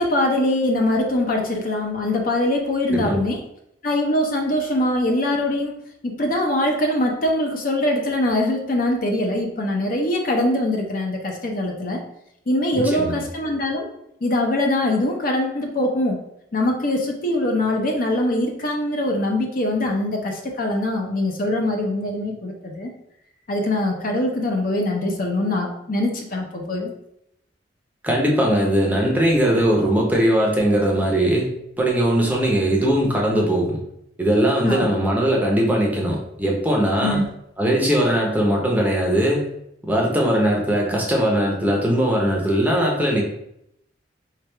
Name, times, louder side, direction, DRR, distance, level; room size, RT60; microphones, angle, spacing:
voice 1, 0.0-3.4 3.8-5.7 6.0-12.0 12.5-13.8 14.2-16.2 16.5-22.9 23.5-26.9 34.6-34.9 37.0-37.2, left 1 dB, 50° left, 1 dB, 0.6 m, -22 dB
voice 2, 12.8-13.2 28.0-31.5 31.8-33.8 34.2-37.2 37.6-39.5 39.8-43.2, right 1 dB, 10° right, -2 dB, 0.6 m, -20 dB
3.3 x 2.3 x 4.4 m, 0.78 s
head